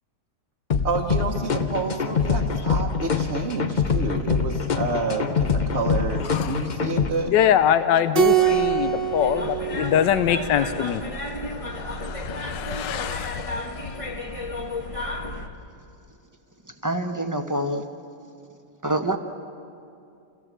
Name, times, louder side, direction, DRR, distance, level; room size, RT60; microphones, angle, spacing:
sound 1, 0.7-7.1, left 6 dB, 55° left, 0.5 m, -24 dB
voice 1, 0.8-7.3, right 3 dB, 40° right, -2 dB, 1.4 m, -29 dB
voice 2, 6.3-6.7 7.3-11.0 11.6-13.9, left 10 dB, 80° left, 9 dB, 1.3 m, -24 dB
Keyboard (musical), 8.1-10.8, right 10 dB, 80° right, 1.9 m, -24 dB
sound 2, 8.2-15.5, left 1 dB, 20° left, 1.3 m, -33 dB
voice 3, 16.6-17.8 18.8-19.2, right 1 dB, 15° right, 5 dB, 0.7 m, -26 dB
29.0 x 15.5 x 7.4 m, 2.5 s
omnidirectional pair, 1.9 m